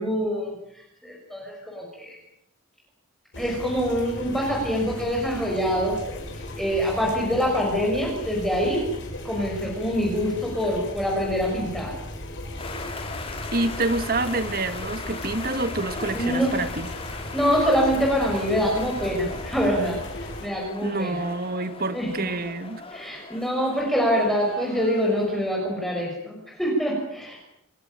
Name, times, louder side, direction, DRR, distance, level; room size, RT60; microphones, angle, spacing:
voice 1, 0.0-2.2 3.4-5.9 6.6-8.8 9.2-11.9 16.1-16.6 17.3-21.2 21.9-22.1 22.9-27.4, equal, ahead, -2 dB, 6.0 m, -25 dB
sound 1, 3.3-20.5, left 1 dB, 55° left, 6.7 m, -37 dB
sound 2, 12.6-25.5, left 3 dB, 25° left, 3.4 m, -38 dB
voice 2, 13.5-16.9 20.8-22.8, right 2 dB, 45° right, 11 dB, 1.6 m, -27 dB
27.5 x 17.0 x 9.0 m, 0.79 s
head